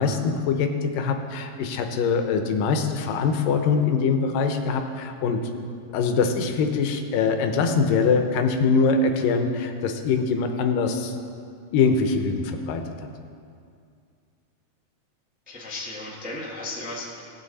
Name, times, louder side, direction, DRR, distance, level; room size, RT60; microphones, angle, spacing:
voice 1, 0.0-5.4 5.9-11.1 11.7-13.1, left 5 dB, 85° left, 6 dB, 2.5 m, -23 dB
voice 2, 15.5-17.2, left 2 dB, 10° right, -5 dB, 0.4 m, -35 dB
17.5 x 8.9 x 4.1 m, 2.3 s
omnidirectional pair, 3.9 m